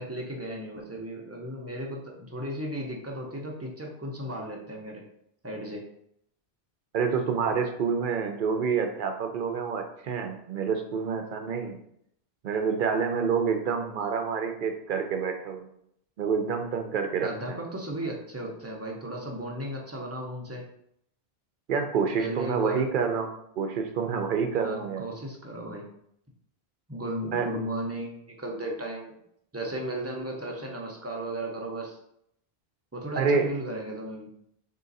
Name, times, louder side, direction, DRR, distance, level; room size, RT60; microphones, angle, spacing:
voice 1, 0.0-5.0 5.4-5.8 17.2-20.6 22.1-22.9 24.5-25.8 26.9-29.2 29.5-32.0 32.9-34.3, right 1 dB, 15° right, -1 dB, 0.6 m, -35 dB
voice 2, 6.9-11.8 12.4-15.7 16.2-17.6 21.7-25.0 27.3-27.5 33.2-33.5, right 6 dB, 60° right, 5 dB, 0.7 m, -28 dB
3.7 x 2.8 x 4.0 m, 0.72 s
omnidirectional pair, 1.0 m